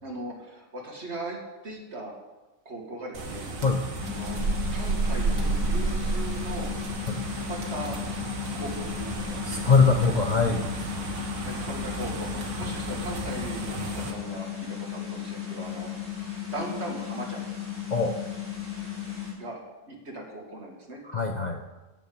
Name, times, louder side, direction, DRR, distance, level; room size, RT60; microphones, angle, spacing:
voice 1, 0.0-2.1 2.7-3.5 4.1-4.4 4.7-6.7 7.0-8.0 8.5-9.4 11.3-15.9 16.2-17.4 19.3-21.0, right 1 dB, 55° right, 0 dB, 2.4 m, -39 dB
sound 1, 3.1-14.1, right 3 dB, 85° right, 1.8 m, -32 dB
sound 2, 4.0-19.3, left 10 dB, 10° right, 3.5 m, -35 dB
voice 2, 9.4-10.6 12.6-12.7 17.9-18.2 21.1-21.6, left 4 dB, 40° left, 3 dB, 0.8 m, -22 dB
10.0 x 7.4 x 8.5 m, 1.1 s
omnidirectional pair, 1.4 m